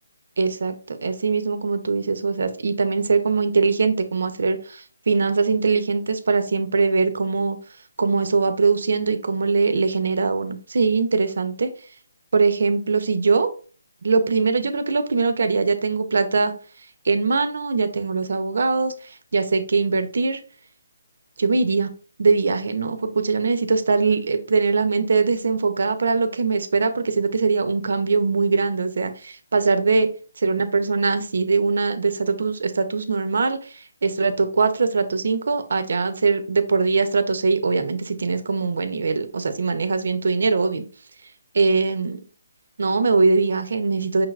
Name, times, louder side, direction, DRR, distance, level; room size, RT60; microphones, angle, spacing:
voice 1, 0.4-7.6 8.0-11.7 12.3-13.5 14.0-16.5 17.0-20.4 21.4-21.9 22.2-30.1 30.4-40.8 41.5-42.2 42.8-44.3, right 4 dB, 65° right, 9 dB, 0.6 m, -22 dB
5.6 x 3.3 x 2.4 m, 0.39 s
hypercardioid pair, 165°, 0 cm